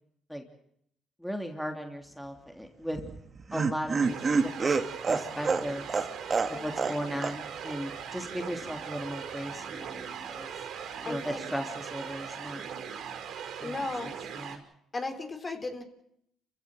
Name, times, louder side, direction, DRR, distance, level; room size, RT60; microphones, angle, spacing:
voice 1, 1.2-3.0 3.5-4.2 4.6-6.1 6.5-10.0 10.3-10.5 11.0-12.6 13.6-14.6, equal, ahead, 3 dB, 3.3 m, -37 dB
Laughter, 2.9-7.0 7.2-7.4 7.7-7.8, right 4 dB, 35° right, 2.2 m, -28 dB
sound 1, 4.0-14.6, right 7 dB, 65° right, 5.5 m, -40 dB
voice 2, 6.5-7.0 11.0-11.4 13.6-14.1 14.9-15.8, left 3 dB, 30° left, 6 dB, 3.9 m, -36 dB
28.5 x 16.5 x 7.9 m, 0.74 s
supercardioid pair, 80°, 0 cm